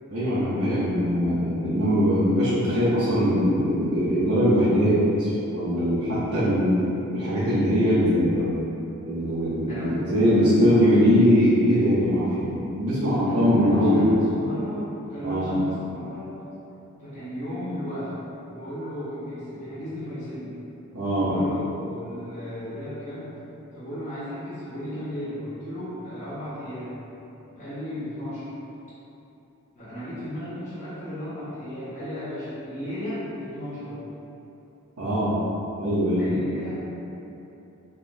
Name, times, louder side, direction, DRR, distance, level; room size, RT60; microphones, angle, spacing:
voice 1, 0.1-6.7 7.1-8.5 9.1-14.0 15.2-15.5 20.9-21.3 35.0-35.4 35.8-36.3, equal, 85° right, -13 dB, 0.8 m, -21 dB
voice 2, 9.7-11.1 12.9-16.4 17.0-18.1 18.5-20.5 21.1-23.3 23.7-26.9 27.6-28.5 29.7-34.0 36.2-36.8, equal, 35° left, -13 dB, 1.0 m, -35 dB
3.6 x 3.0 x 2.6 m, 2.9 s
head